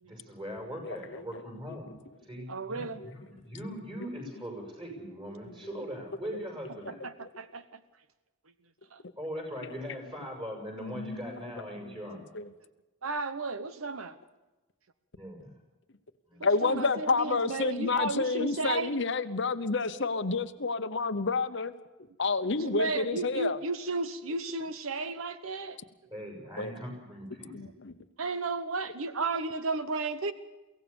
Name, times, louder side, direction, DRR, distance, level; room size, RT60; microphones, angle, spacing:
voice 1, 0.0-2.0 2.2-7.0 9.2-12.2 15.2-15.5 16.3-16.4 26.1-27.6, equal, 25° right, 1 dB, 6.9 m, -40 dB
voice 2, 0.8-1.2 3.0-3.1 9.6-9.7 10.8-11.4 12.3-12.4 16.4-21.7 22.2-23.6 26.6-26.7 27.5-27.9, left 4 dB, 60° left, 10 dB, 0.9 m, -29 dB
voice 3, 2.5-3.1 7.0-7.8 8.9-9.0 13.0-14.2 16.4-19.0 22.6-25.8 28.2-30.3, right 3 dB, 80° right, 12 dB, 1.0 m, -33 dB
23.5 x 17.0 x 7.0 m, 1.1 s
head